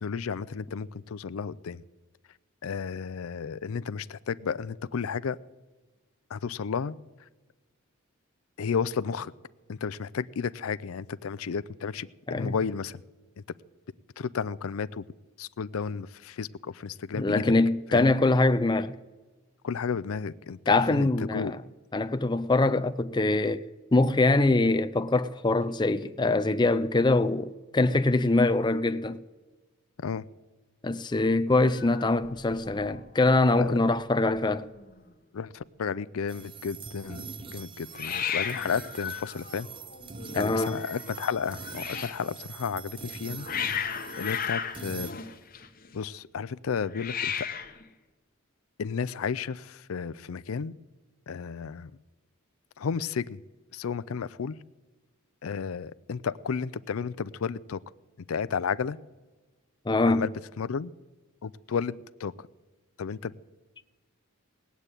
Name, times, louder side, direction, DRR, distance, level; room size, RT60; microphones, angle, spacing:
voice 1, 0.0-1.8 2.6-5.4 6.3-7.0 8.6-9.3 9.7-13.0 14.2-15.0 15.4-17.5 17.9-18.1 19.6-21.5 30.0-30.3 33.6-33.9 35.3-39.7 40.3-43.8 44.2-45.2 45.9-47.5 48.8-50.7 51.3-51.9 52.8-53.4 53.7-54.6 55.4-57.8 58.3-59.0 60.1-60.9 61.4-62.5 63.0-63.3, left 6 dB, 85° left, 0.5 m, -32 dB
voice 2, 17.1-19.0 20.7-21.6 21.9-23.6 23.9-29.2 30.8-34.7 40.3-40.8 59.9-60.3, left 2 dB, 20° left, 0.5 m, -23 dB
Hiss, 31.6-33.0 33.2-33.7 34.0-34.1 34.2-34.9 37.9-42.2 43.0-45.9 46.9-47.8, left 7 dB, 45° left, 1.3 m, -35 dB
sound 1, 36.3-45.1, right 5 dB, 25° right, 0.6 m, -43 dB
18.5 x 8.2 x 9.0 m
head